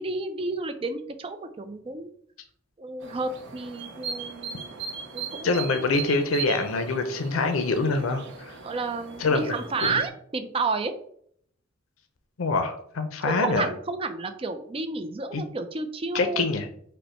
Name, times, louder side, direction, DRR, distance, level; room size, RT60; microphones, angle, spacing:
voice 1, 0.0-2.1 2.8-4.7 5.1-5.9 8.6-10.9 13.3-16.5, right 3 dB, 30° right, 9 dB, 0.4 m, -31 dB
sound 1, 3.0-10.1, right 6 dB, 60° right, 0.7 m, -38 dB
voice 2, 5.4-8.6 9.2-10.0 12.4-13.7 15.3-15.4 16.1-16.7, left 3 dB, 90° left, 7 dB, 0.5 m, -25 dB
5.3 x 2.1 x 4.3 m, 0.64 s
head